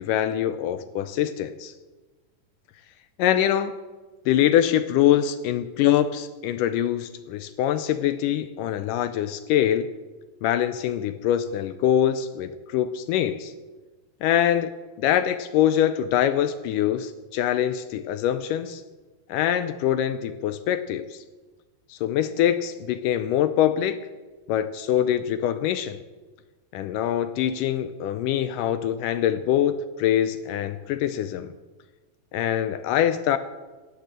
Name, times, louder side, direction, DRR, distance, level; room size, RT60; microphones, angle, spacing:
voice 1, 0.0-1.7 3.2-3.7 4.3-9.9 10.4-13.5 14.2-14.7 15.0-18.8 19.3-21.2 21.9-24.0 24.5-26.0 26.7-31.5 32.3-33.4, left 11 dB, 80° left, 11 dB, 1.9 m, -24 dB
19.0 x 6.7 x 7.6 m, 1.3 s
omnidirectional pair, 4.3 m